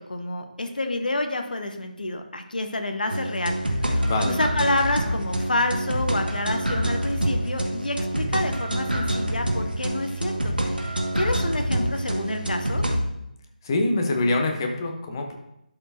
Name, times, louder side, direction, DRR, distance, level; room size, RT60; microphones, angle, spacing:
voice 1, 0.1-12.8, left 2 dB, 70° left, 5 dB, 0.9 m, -28 dB
sound 1, 3.1-13.0, right 1 dB, 90° right, 1.4 m, -26 dB
voice 2, 4.0-4.4 13.6-15.4, left 2 dB, 25° left, 3 dB, 1.1 m, -25 dB
11.5 x 4.8 x 2.8 m, 0.83 s
figure-of-eight pair, 155°, 5 cm